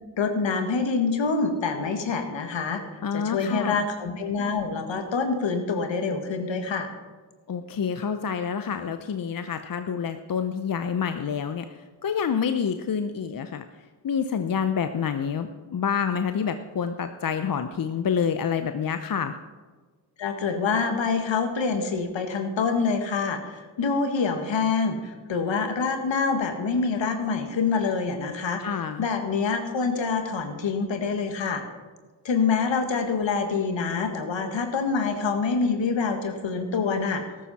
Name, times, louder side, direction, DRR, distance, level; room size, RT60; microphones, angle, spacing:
voice 1, 0.2-2.8 3.1-6.9 20.2-28.6 29.0-31.6 32.2-37.2, left 4 dB, 65° left, 6 dB, 1.8 m, -26 dB
voice 2, 3.0-3.8 7.5-13.7 14.0-19.4 28.6-29.1, left 7 dB, 45° left, 9 dB, 0.8 m, -28 dB
14.0 x 12.5 x 4.2 m, 1.4 s
supercardioid pair, 45°, 48 cm